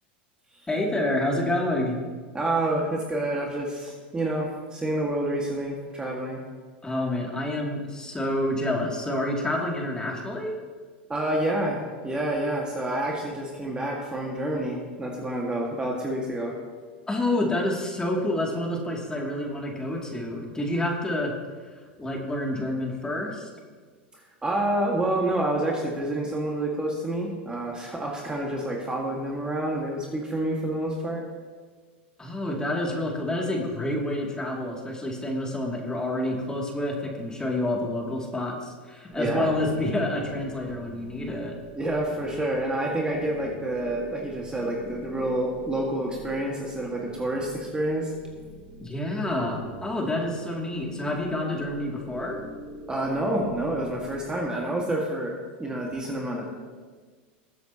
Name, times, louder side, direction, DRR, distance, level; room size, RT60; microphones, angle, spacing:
voice 1, 0.7-2.0 6.8-10.6 17.1-21.3 22.0-23.5 32.2-41.6 48.8-52.4, left 1 dB, 15° left, -1 dB, 2.6 m, -28 dB
voice 2, 2.3-6.4 11.1-16.5 24.1-31.2 39.2-39.5 41.8-48.1 52.9-56.5, right 1 dB, 15° right, -2 dB, 1.9 m, -28 dB
sound 1, 39.1-54.4, right 3 dB, 45° right, 3.3 m, -44 dB
20.5 x 7.9 x 3.0 m, 1.5 s
hypercardioid pair, 95°, 6 cm